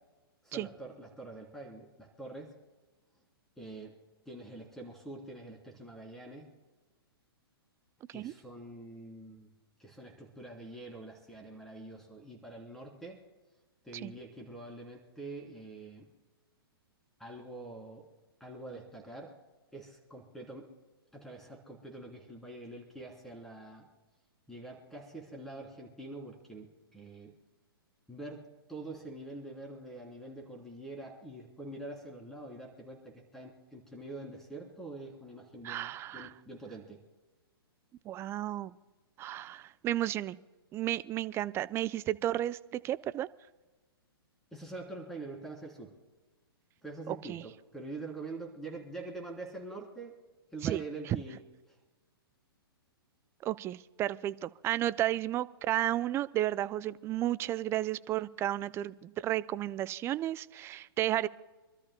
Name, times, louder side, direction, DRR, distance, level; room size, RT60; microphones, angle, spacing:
voice 1, 0.4-2.5 3.6-3.9 4.2-6.5 8.1-9.5 9.8-13.2 13.8-16.1 17.2-18.1 18.4-19.3 19.7-20.7 21.1-23.9 24.5-27.3 28.1-37.0 44.5-45.9 46.8-50.1 50.5-51.4 51.7-51.8, right 2 dB, 5° left, 0 dB, 3.3 m, -45 dB
voice 2, 35.6-36.3 38.1-38.7 39.2-40.4 40.7-43.3 47.1-47.4 50.6-51.2 53.4-61.3, right 13 dB, 20° right, 16 dB, 0.4 m, -33 dB
27.5 x 13.0 x 2.2 m, 1.2 s
hypercardioid pair, 120°, 13 cm